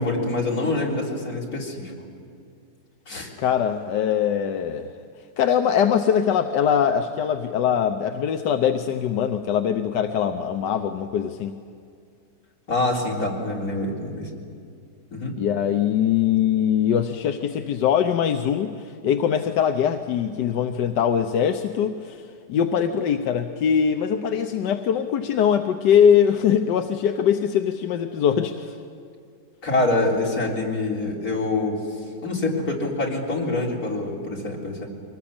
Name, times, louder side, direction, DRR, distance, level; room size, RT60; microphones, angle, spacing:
voice 1, 0.0-1.9 3.1-3.3 12.7-14.3 15.1-15.4 29.6-31.8 32.2-34.9, left 2 dB, 60° left, -3 dB, 4.2 m, -25 dB
voice 2, 3.4-4.9 5.4-11.5 15.4-28.8, left 8 dB, 90° left, 6 dB, 1.4 m, -22 dB
24.0 x 19.5 x 8.8 m, 2.3 s
omnidirectional pair, 1.8 m